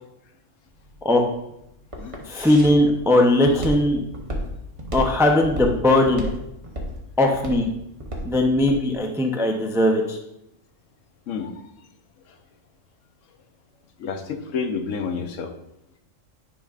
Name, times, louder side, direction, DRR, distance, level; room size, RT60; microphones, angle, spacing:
Walk footsteps, 0.7-8.8, equal, 30° right, 1.1 m, -32 dB
voice 1, 2.3-4.0 4.9-6.3 7.2-7.7 8.2-10.2, left 1 dB, 5° right, 2 dB, 0.4 m, -19 dB
voice 2, 14.0-15.5, left 5 dB, 75° left, 7 dB, 1.0 m, -29 dB
10.0 x 5.2 x 2.4 m, 0.83 s
omnidirectional pair, 1.3 m